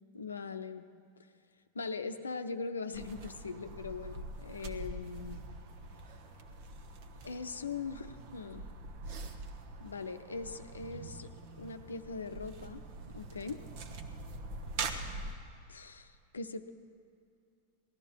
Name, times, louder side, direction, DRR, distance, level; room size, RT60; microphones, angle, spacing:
voice 1, 0.1-0.9 1.7-5.4 7.2-8.7 9.8-11.3 11.6-13.6 15.7-16.7, left 4 dB, 75° left, 9 dB, 0.6 m, -41 dB
sound 1, 2.9-15.3, right 3 dB, 45° right, 1.2 m, -44 dB
19.0 x 12.5 x 4.7 m, 2.4 s
figure-of-eight pair, 90°, 0 cm